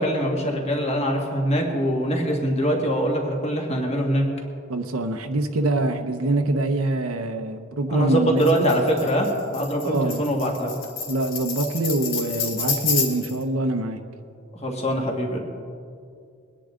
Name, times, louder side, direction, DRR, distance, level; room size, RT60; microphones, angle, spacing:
voice 1, 0.0-4.3 7.9-10.7 14.5-15.4, equal, 30° left, 1 dB, 1.8 m, -23 dB
voice 2, 4.7-8.7 9.8-10.2 11.1-14.0, right 2 dB, 85° right, 5 dB, 0.9 m, -24 dB
Tambourine, 8.4-13.4, left 6 dB, 65° left, 1.7 m, -29 dB
23.0 x 10.0 x 3.8 m, 2.4 s
head